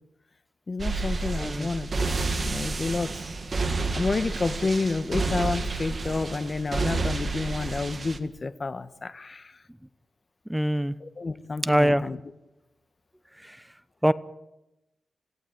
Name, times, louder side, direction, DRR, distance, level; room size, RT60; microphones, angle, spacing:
voice 1, 0.7-3.2 3.9-9.6 11.0-12.2, left 3 dB, 35° left, 11 dB, 1.3 m, -30 dB
sound 1, 0.8-8.2, right 3 dB, 40° right, 2.0 m, -30 dB
voice 2, 1.4-1.7 10.5-10.9 11.6-12.1 13.4-13.6 14.0-14.1, equal, 5° right, 14 dB, 0.8 m, -23 dB
26.5 x 17.0 x 9.3 m, 0.97 s
wide cardioid pair, 120°, 0 cm